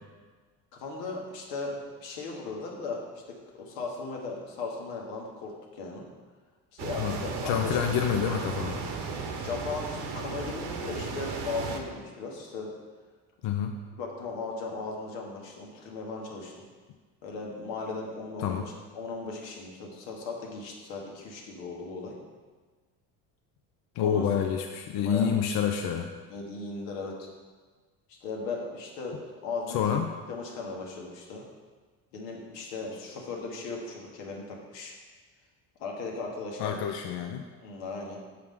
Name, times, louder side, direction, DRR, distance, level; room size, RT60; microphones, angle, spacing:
voice 1, 0.8-6.0 6.7-7.8 9.4-12.7 14.0-16.6 17.2-22.2 24.0-24.3 24.9-25.3 26.3-27.3 28.2-30.0 30.3-31.4 32.1-34.9 35.8-36.8 37.6-38.4, left 3 dB, 85° left, 0 dB, 1.3 m, -37 dB
sound 1, 6.8-11.8, right 4 dB, 60° right, 0.9 m, -35 dB
voice 2, 7.5-8.8 13.4-13.7 18.4-18.6 24.0-26.1 29.7-30.1 36.6-37.4, left 8 dB, 60° left, 4 dB, 0.6 m, -28 dB
5.9 x 4.7 x 3.6 m, 1.4 s
supercardioid pair, 80°, 45 cm